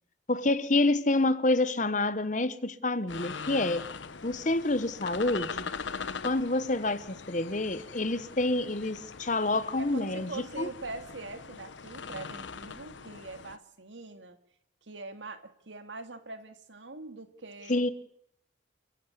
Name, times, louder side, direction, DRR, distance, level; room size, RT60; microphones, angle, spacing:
voice 1, 0.3-3.8 4.2-5.6 6.2-10.3 10.6-10.7 17.7-17.9, left 2 dB, 40° left, 1.1 m, -28 dB
sound 1, 3.1-13.6, left 5 dB, 80° left, 1.0 m, -41 dB
voice 2, 9.8-14.4 14.8-17.9, right 3 dB, 75° right, 2.2 m, -43 dB
29.5 x 11.5 x 8.3 m
head